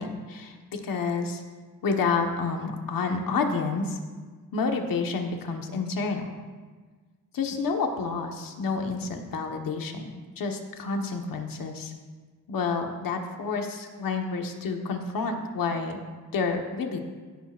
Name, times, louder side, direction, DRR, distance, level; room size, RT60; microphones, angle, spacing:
voice 1, 0.0-1.4 1.8-4.0 4.5-6.3 7.3-10.0 10.4-11.9 12.5-16.0 16.3-17.0, left 4 dB, 85° left, 3 dB, 1.4 m, -29 dB
16.5 x 10.5 x 2.5 m, 1.4 s
wide cardioid pair, 115°, 33 cm